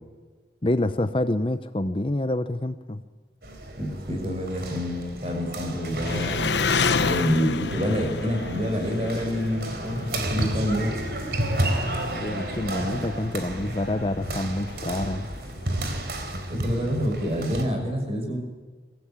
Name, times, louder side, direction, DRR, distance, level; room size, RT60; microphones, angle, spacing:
voice 1, 0.6-3.0 12.1-15.3, left 1 dB, 30° left, 10 dB, 0.7 m, -27 dB
sound 1, 3.4-17.6, right 1 dB, 60° right, 3.8 m, -32 dB
voice 2, 3.8-6.6 7.1-10.9 16.5-18.4, equal, 35° right, 3 dB, 6.2 m, -27 dB
Engine, 6.0-16.2, left 4 dB, 80° left, 1.0 m, -31 dB
24.0 x 17.0 x 8.7 m, 1.4 s
head